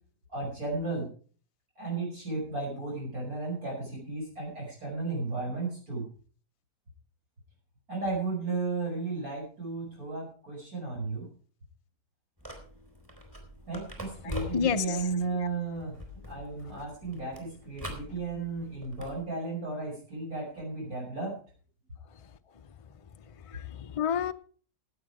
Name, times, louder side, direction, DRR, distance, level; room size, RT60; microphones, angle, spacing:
voice 1, 0.3-1.1 1.8-6.1 7.9-11.3 13.7-21.3, right 3 dB, 60° right, -4 dB, 6.0 m, -34 dB
sound 1, 12.4-19.2, equal, 15° right, 4.1 m, -44 dB
voice 2, 14.2-15.0 23.4-24.3, left 7 dB, 50° left, 10 dB, 0.4 m, -30 dB
17.0 x 8.4 x 4.9 m, 0.41 s
omnidirectional pair, 1.7 m